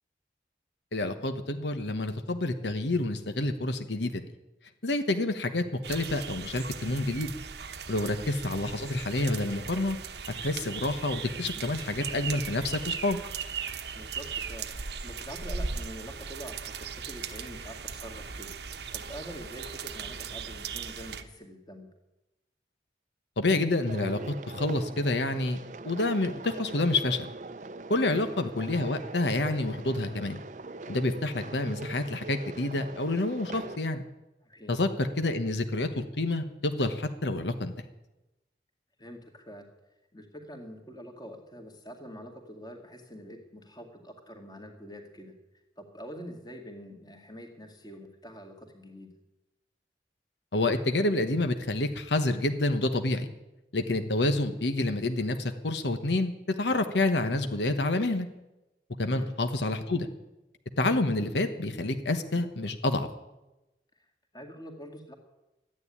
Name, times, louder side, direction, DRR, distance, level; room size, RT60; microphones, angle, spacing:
voice 1, 0.9-4.2 4.8-7.3 7.9-10.0 10.3-13.2 23.4-27.3 27.9-30.4 30.9-34.0 34.7-37.7 50.5-53.3 53.7-56.3 56.6-58.3 59.0-60.1 60.8-63.1, left 2 dB, 85° left, 8 dB, 1.1 m, -28 dB
sound 1, 5.8-21.2, right 6 dB, 75° right, 1.0 m, -38 dB
voice 2, 13.9-18.6 18.9-21.9 28.1-28.3 34.4-34.8 39.0-39.7 40.1-45.4 45.8-49.1 59.1-59.3 64.3-65.1, equal, 25° left, 4 dB, 2.1 m, -45 dB
sound 2, 23.9-33.8, right 3 dB, 45° right, 0.6 m, -42 dB
13.0 x 9.8 x 9.8 m, 0.98 s
head